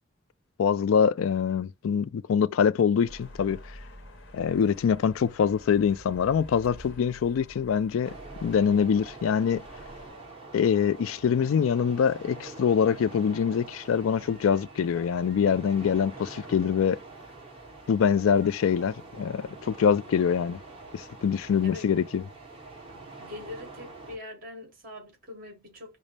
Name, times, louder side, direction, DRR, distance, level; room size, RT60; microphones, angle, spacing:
voice 1, 0.6-3.6 4.3-8.1 8.4-9.6 10.5-17.0 17.9-20.6 20.9-22.2, left 7 dB, 85° left, 0.3 m, -24 dB
sound 1, 3.1-10.1, equal, 65° left, 1.0 m, -48 dB
sound 2, 8.0-24.2, right 3 dB, 30° right, 1.5 m, -46 dB
voice 2, 23.2-26.0, left 2 dB, 45° right, 2.2 m, -43 dB
5.3 x 2.0 x 3.2 m
head